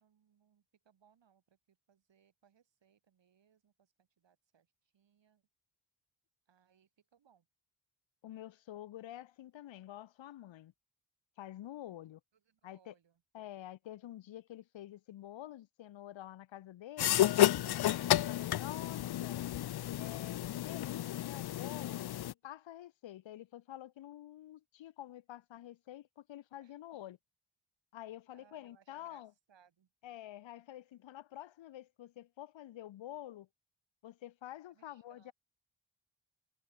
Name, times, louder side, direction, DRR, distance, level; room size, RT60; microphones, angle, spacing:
voice 1, 0.0-5.4 6.5-7.5 11.9-12.0 12.3-13.2 18.0-18.4 26.6-26.8 28.3-29.9 34.7-35.3, right 8 dB, 65° right, 5.1 m, -70 dB
voice 2, 8.2-10.7 11.4-12.2 12.6-12.9 13.3-17.2 17.8-19.4 19.9-27.2 27.9-29.3 30.0-33.5 34.0-35.3, left 13 dB, 75° left, 1.1 m, -48 dB
sound 1, 17.0-22.3, left 13 dB, 55° left, 0.6 m, -31 dB
supercardioid pair, 50°, 46 cm